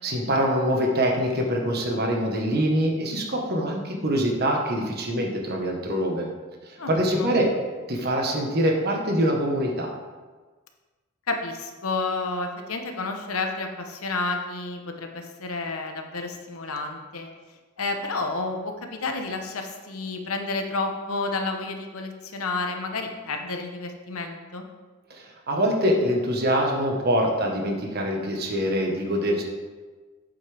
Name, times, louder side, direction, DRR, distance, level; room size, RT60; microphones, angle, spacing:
voice 1, 0.0-6.3 6.9-7.5 7.9-9.9 25.1-29.4, equal, 50° right, 1 dB, 1.3 m, -24 dB
voice 2, 6.8-7.3 11.3-17.3 17.8-24.7, left 3 dB, 85° left, 4 dB, 1.1 m, -30 dB
8.4 x 7.9 x 3.5 m, 1.3 s
head